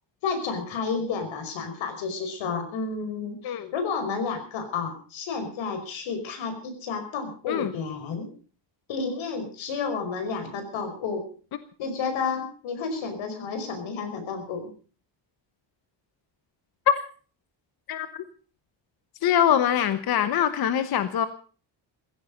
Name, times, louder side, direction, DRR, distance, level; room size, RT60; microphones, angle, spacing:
voice 1, 0.2-8.3 8.9-11.2 11.8-14.6, left 5 dB, 90° left, 8 dB, 5.2 m, -31 dB
voice 2, 17.9-18.2 19.2-21.3, left 10 dB, 55° left, 11 dB, 1.1 m, -24 dB
16.5 x 16.0 x 5.2 m, 0.40 s
cardioid pair, 170°, 45 cm